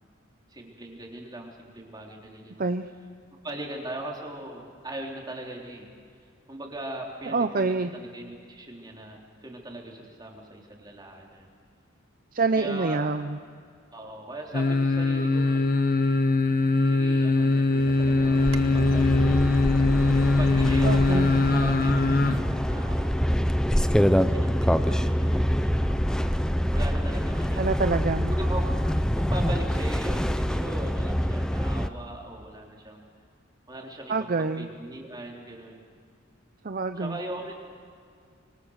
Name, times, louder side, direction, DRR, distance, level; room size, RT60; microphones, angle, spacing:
voice 1, 0.5-2.6 3.4-5.9 6.5-11.5 12.6-13.0 13.9-15.8 16.8-19.5 20.4-23.5 24.3-27.7 28.2-33.0 33.7-35.8 37.0-37.6, right 1 dB, 20° right, -1 dB, 3.6 m, -39 dB
voice 2, 7.3-7.9 12.3-13.4 20.8-21.3 27.6-28.3 34.1-34.7 36.6-37.2, right 3 dB, 45° right, 9 dB, 0.6 m, -26 dB
sound 1, 14.5-22.4 22.7-22.8, left 3 dB, 45° left, 1.0 m, -22 dB
sound 2, 17.8-31.9, equal, 5° left, 0.6 m, -25 dB
Bird vocalization bird call bird song, 18.4-24.0, right 2 dB, 80° right, 1.1 m, -42 dB
26.0 x 24.0 x 6.5 m, 2.2 s
head